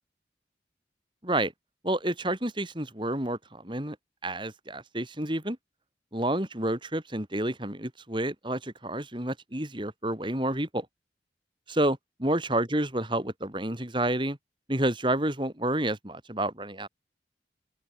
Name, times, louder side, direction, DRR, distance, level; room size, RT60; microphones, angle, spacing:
voice 1, 1.8-4.0 4.2-5.6 6.1-10.9 11.7-14.4 14.7-16.9, right 1 dB, 25° right, 4.2 m, -29 dB
open air
head